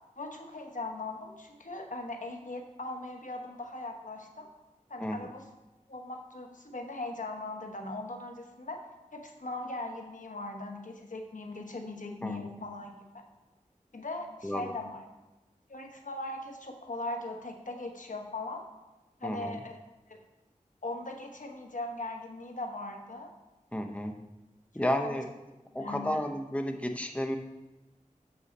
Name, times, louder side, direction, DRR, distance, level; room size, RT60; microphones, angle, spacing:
voice 1, 0.2-4.5 4.9-5.4 5.9-8.8 9.1-13.2 13.9-15.0 15.7-18.6 19.2-19.8 20.1-20.2 20.8-23.3 25.0-25.2 25.8-26.2, left 2 dB, 70° left, 3 dB, 1.1 m, -39 dB
voice 2, 14.4-14.7 19.2-19.6 23.7-24.2 24.7-25.3 25.7-27.4, equal, 10° left, 5 dB, 0.7 m, -32 dB
8.3 x 6.3 x 4.2 m, 1.1 s
wide cardioid pair, 50°, 14 cm